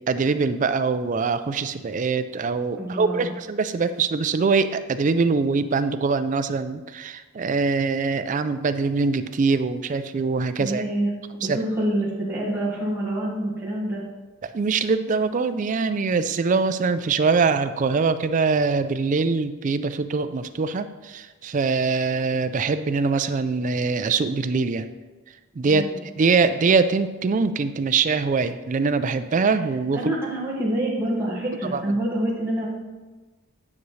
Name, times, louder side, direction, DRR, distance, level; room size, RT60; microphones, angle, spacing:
voice 1, 0.1-10.8 11.5-11.6 14.4-24.9 25.6-30.2 31.7-31.8, right 4 dB, 35° right, 11 dB, 0.3 m, -23 dB
voice 2, 2.8-3.3 10.6-11.1 11.4-14.0 25.6-26.0 29.9-32.7, right 1 dB, 10° right, -6 dB, 1.5 m, -26 dB
9.7 x 6.1 x 3.2 m, 1.2 s
head